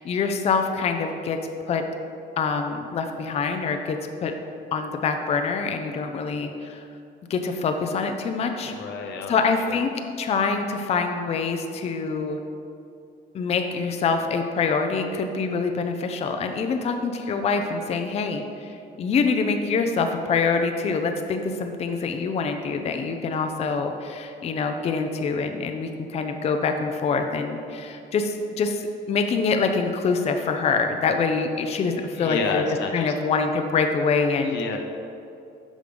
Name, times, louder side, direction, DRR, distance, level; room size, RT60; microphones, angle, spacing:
voice 1, 0.0-1.4 1.7-1.8 2.4-4.3 4.7-6.9 7.3-8.7 9.3-9.9 10.2-12.4 13.3-32.6 32.9-34.6, left 4 dB, 35° left, 5 dB, 0.5 m, -25 dB
voice 2, 8.6-9.3 9.7-9.8 32.1-33.1 34.4-34.8, left 4 dB, 80° left, 4 dB, 0.8 m, -29 dB
6.2 x 5.2 x 5.1 m, 2.6 s
cardioid pair, 130°, 18 cm